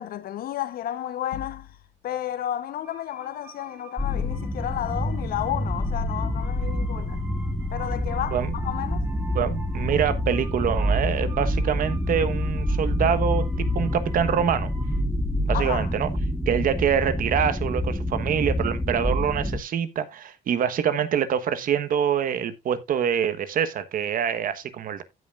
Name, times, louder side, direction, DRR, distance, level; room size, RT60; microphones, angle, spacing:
voice 1, 0.0-1.8 2.0-7.2 7.7-9.0 15.5-15.9, left 11 dB, 60° left, 0.9 m, -32 dB
sound 1, 1.3-2.3, left 10 dB, 85° left, 1.5 m, -42 dB
sound 2, 2.8-15.0, right 4 dB, 15° right, 3.2 m, -48 dB
sound 3, 4.0-19.6, left 1 dB, ahead, 0.9 m, -27 dB
voice 2, 9.3-14.7 15.4-16.1 16.5-25.0, right 8 dB, 55° right, 1.2 m, -25 dB
15.5 x 5.5 x 2.4 m
cardioid pair, 110°, 17 cm